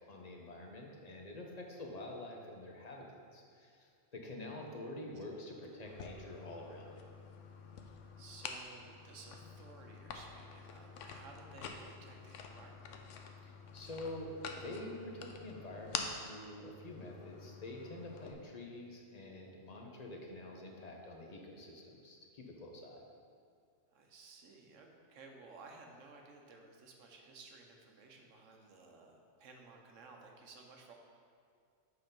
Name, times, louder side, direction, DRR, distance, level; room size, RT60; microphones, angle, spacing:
voice 1, 0.0-7.0 13.4-23.0, left 1 dB, 35° left, 0 dB, 0.9 m, -47 dB
sound 1, 5.8-18.3, left 6 dB, 75° left, 0.9 m, -48 dB
voice 2, 7.7-12.8 23.9-30.9, right 3 dB, 75° right, 2 dB, 1.2 m, -56 dB
7.7 x 4.1 x 5.2 m, 2.3 s
omnidirectional pair, 1.3 m